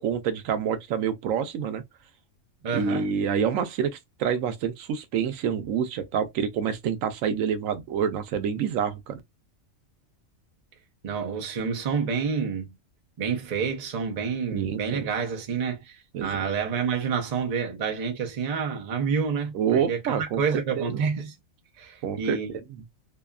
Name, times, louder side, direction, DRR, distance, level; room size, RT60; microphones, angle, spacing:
voice 1, 0.0-1.8 2.7-3.9 4.2-9.2 14.5-15.0 16.1-16.5 19.5-20.4 20.7-21.0 22.0-22.6, right 7 dB, 85° right, 1.0 m, -27 dB
voice 2, 2.6-3.1 11.0-12.8 13.2-21.3 21.8-22.5, right 6 dB, 40° right, 0.6 m, -28 dB
2.7 x 2.3 x 2.2 m
omnidirectional pair, 1.4 m